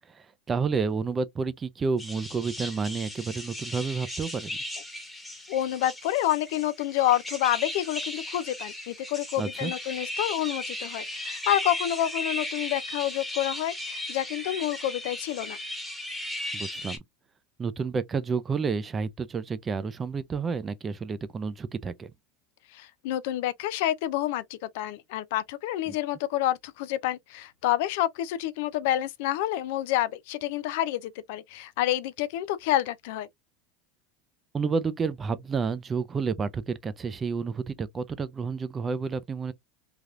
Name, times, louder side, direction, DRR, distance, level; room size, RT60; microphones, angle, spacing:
voice 1, 0.1-4.6 9.4-9.7 16.5-17.0 17.6-22.1 34.5-39.5, right 5 dB, 25° right, 0.5 m, -30 dB
sound 1, 2.0-17.0, left 1 dB, 5° left, 1.1 m, -36 dB
voice 2, 5.5-15.6 22.7-33.3, left 13 dB, 70° left, 0.4 m, -28 dB
3.3 x 2.3 x 2.5 m
supercardioid pair, 120°, 0 cm